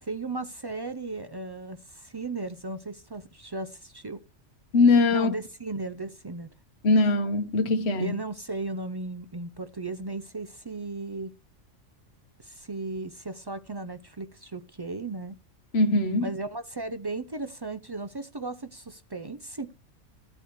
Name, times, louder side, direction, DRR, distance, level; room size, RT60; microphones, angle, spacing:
voice 1, 0.0-4.2 5.1-6.5 8.0-11.3 12.4-15.4 16.2-19.7, right 3 dB, 40° right, 0.3 m, -36 dB
voice 2, 4.7-5.3 6.8-8.2 15.7-16.3, left 3 dB, 60° left, 1.3 m, -21 dB
14.0 x 11.0 x 3.0 m
omnidirectional pair, 1.3 m